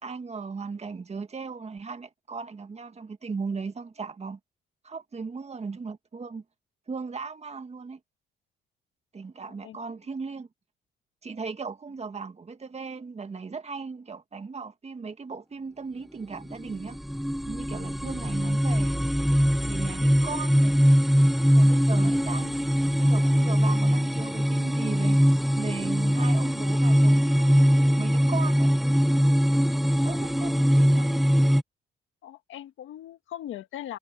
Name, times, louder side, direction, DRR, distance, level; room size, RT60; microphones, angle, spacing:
voice 1, 0.0-4.4 4.8-6.4 6.9-8.0 9.1-10.5 11.2-17.0 17.5-19.1 19.6-20.7 21.4-22.5 23.0-25.2 25.6-27.7 28.0-28.7 29.7-31.2, right 4 dB, 35° right, 1.9 m, -37 dB
voice 2, 9.6-10.0 32.2-34.0, left 12 dB, 80° left, 1.6 m, -40 dB
sound 1, 16.3-31.6, equal, ahead, 0.7 m, -22 dB
cardioid pair, 90°, 20 cm